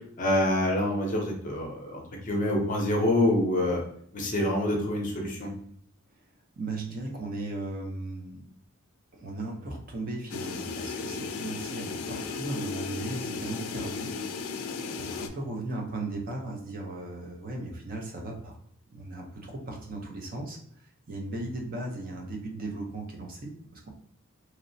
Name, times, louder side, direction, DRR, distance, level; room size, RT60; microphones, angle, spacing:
voice 1, 0.2-3.8 4.1-5.5, left 1 dB, 35° left, 0 dB, 0.6 m, -26 dB
voice 2, 6.6-8.4 9.1-14.1 14.9-18.6 18.9-23.9, right 2 dB, 40° right, 1 dB, 0.5 m, -37 dB
sound 1, 10.3-15.3, left 4 dB, 80° left, 0.3 m, -35 dB
2.9 x 2.0 x 2.5 m, 0.68 s
head